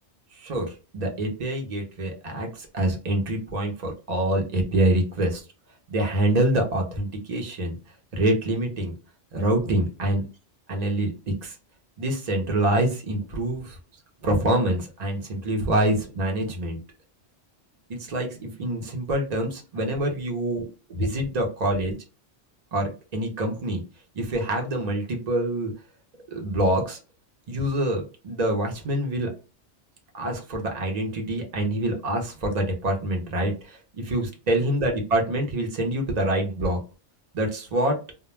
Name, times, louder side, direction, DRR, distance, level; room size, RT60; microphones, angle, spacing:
voice 1, 0.4-5.4 5.9-7.8 8.1-8.9 9.3-10.2 10.7-11.5 12.0-13.8 14.2-16.8 17.9-22.0 22.7-23.8 24.1-25.7 26.3-27.0 27.5-29.3 30.1-36.8 37.3-38.0, right 1 dB, 40° right, 2 dB, 0.7 m, -26 dB
2.2 x 2.1 x 3.1 m, 0.32 s
omnidirectional pair, 1.2 m